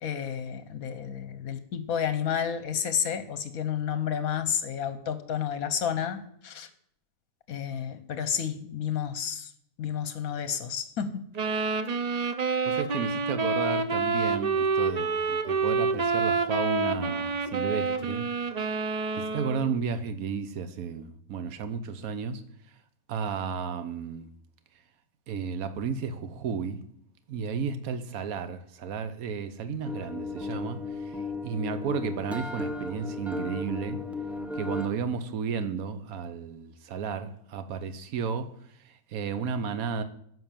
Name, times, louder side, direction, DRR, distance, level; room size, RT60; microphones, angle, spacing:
voice 1, 0.0-6.7 7.5-9.5 9.8-11.2, left 8 dB, 70° left, 1.2 m, -31 dB
sound 1, 11.3-19.7, right 4 dB, 45° right, 0.5 m, -28 dB
voice 2, 12.7-18.2 18.6-18.7 19.2-22.4 23.1-24.3 25.3-26.8 27.3-31.2 31.4-34.0 34.6-38.5 38.8-40.0, right 6 dB, 70° right, 1.3 m, -33 dB
sound 2, 29.8-34.9, left 3 dB, ahead, 0.9 m, -35 dB
12.5 x 5.8 x 7.3 m
omnidirectional pair, 1.6 m